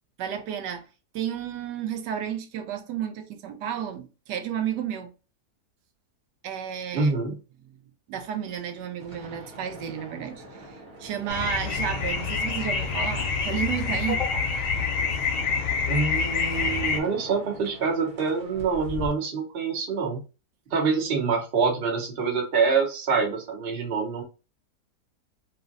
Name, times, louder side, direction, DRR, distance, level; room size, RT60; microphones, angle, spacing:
voice 1, 0.2-0.9 1.1-5.1 6.4-7.1 8.1-14.2, right 9 dB, 90° right, 1.2 m, -32 dB
voice 2, 6.9-7.4 15.9-20.2 20.7-24.2, right 5 dB, 45° right, 0.8 m, -26 dB
sound 1, 8.3-19.1, equal, 60° right, 1.2 m, -43 dB
Wetlands Night, 11.3-17.0, left 5 dB, 65° left, 0.9 m, -27 dB
3.0 x 2.6 x 2.4 m
omnidirectional pair, 1.7 m